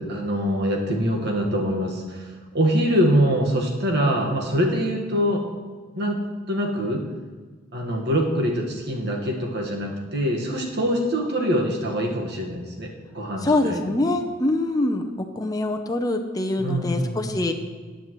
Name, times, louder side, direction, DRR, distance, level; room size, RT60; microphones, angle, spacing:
voice 1, 0.0-5.4 5.9-6.2 6.5-7.0 7.7-13.9 16.6-17.5, equal, 55° right, 0 dB, 1.6 m, -24 dB
voice 2, 13.4-15.1 15.4-17.5, left 2 dB, 20° left, 3 dB, 0.6 m, -24 dB
14.0 x 9.2 x 3.1 m, 1.4 s
head